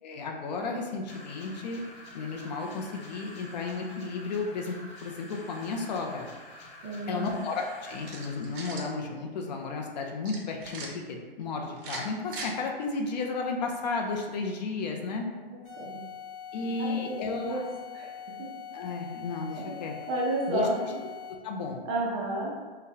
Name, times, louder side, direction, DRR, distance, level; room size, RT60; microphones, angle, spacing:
voice 1, 0.0-1.8 2.1-4.7 5.0-6.3 7.1-15.3 16.5-17.6 18.7-20.0 20.5-20.9 21.3-21.8, left 4 dB, 45° left, 1 dB, 0.4 m, -33 dB
sound 1, 1.1-8.7, left 1 dB, 80° left, 1.1 m, -48 dB
voice 2, 6.8-7.3 15.3-16.0 16.8-17.6 17.9-18.1 20.1-20.8 21.9-22.5, right 2 dB, 25° right, -3 dB, 0.5 m, -31 dB
sound 2, 8.0-8.9 10.2-10.9 11.8-12.5, right 3 dB, 55° right, 0.8 m, -40 dB
sound 3, 15.6-21.5, left 8 dB, 25° left, 0.9 m, -43 dB
3.8 x 2.1 x 2.7 m, 1.5 s
hypercardioid pair, 135°, 31 cm